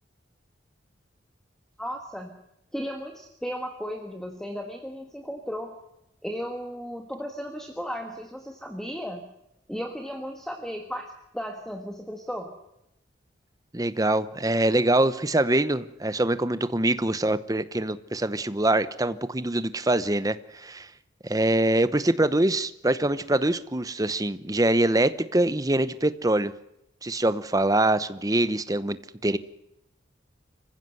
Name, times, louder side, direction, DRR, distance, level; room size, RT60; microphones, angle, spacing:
voice 1, 1.8-2.5 2.7-5.7 6.2-9.3 9.7-12.6, equal, 5° left, 4 dB, 1.5 m, -35 dB
voice 2, 13.7-20.9 21.2-26.5 27.0-29.0 29.2-29.4, right 1 dB, 20° right, 13 dB, 0.8 m, -24 dB
25.5 x 15.5 x 7.8 m, 0.86 s
head